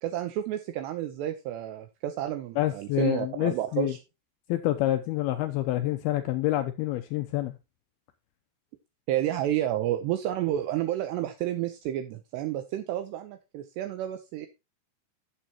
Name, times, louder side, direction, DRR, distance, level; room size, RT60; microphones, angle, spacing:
voice 1, 0.0-4.0 9.1-14.5, right 12 dB, 75° right, 2.8 m, -30 dB
voice 2, 2.6-3.9 4.5-7.6, left 14 dB, 90° left, 2.2 m, -27 dB
12.5 x 7.9 x 2.9 m
omnidirectional pair, 5.2 m